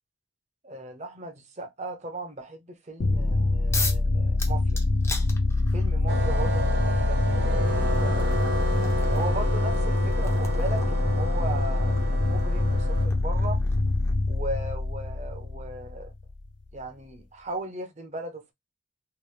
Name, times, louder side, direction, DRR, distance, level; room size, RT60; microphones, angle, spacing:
voice 1, 0.6-4.8 5.7-8.4 9.0-13.6 14.3-16.1 16.7-18.5, right 2 dB, 35° right, 0.6 m, -37 dB
sound 1, 3.0-16.4, left 2 dB, 70° left, 0.6 m, -25 dB
sound 2, 3.7-4.1 4.4-5.9 7.1-7.2 7.7-14.3, left 3 dB, 15° left, 0.4 m, -38 dB
sound 3, 6.1-13.1, right 1 dB, 60° right, 0.9 m, -31 dB
2.8 x 2.1 x 3.2 m
head